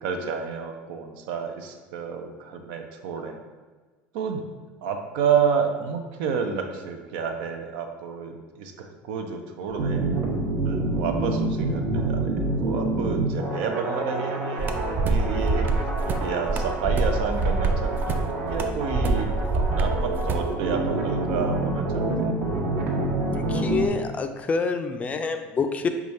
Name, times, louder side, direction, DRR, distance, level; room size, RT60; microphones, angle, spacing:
voice 1, 0.0-3.4 4.1-4.4 4.8-10.4 10.6-15.7 16.2-22.3, right 6 dB, 85° right, 4 dB, 0.5 m, -30 dB
sound 1, 9.7-23.9, right 2 dB, 55° right, 0.8 m, -28 dB
sound 2, 14.6-20.5, right 3 dB, 35° right, 0.4 m, -25 dB
voice 2, 23.3-25.9, left 4 dB, 25° left, 7 dB, 0.3 m, -27 dB
4.9 x 2.4 x 4.1 m, 1.3 s
supercardioid pair, 120°, 5 cm